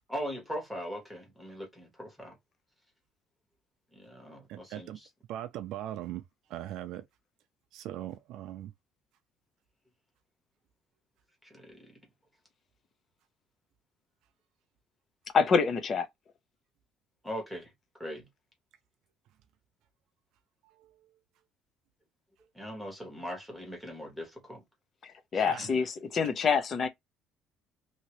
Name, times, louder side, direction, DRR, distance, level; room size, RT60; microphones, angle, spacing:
voice 1, 0.1-2.4 3.9-4.9 11.4-11.9 17.2-17.7 18.0-18.3 22.5-24.6 25.3-25.5, equal, ahead, 1.4 m, -40 dB
voice 2, 4.5-5.0 5.3-6.2 6.5-7.1 7.7-8.7 20.6-21.1 25.5-25.7, right 12 dB, 65° right, 0.4 m, -40 dB
voice 3, 15.3-16.1 25.0-26.9, left 5 dB, 30° left, 0.6 m, -26 dB
2.8 x 2.8 x 3.0 m
cardioid pair, 165°, 0 cm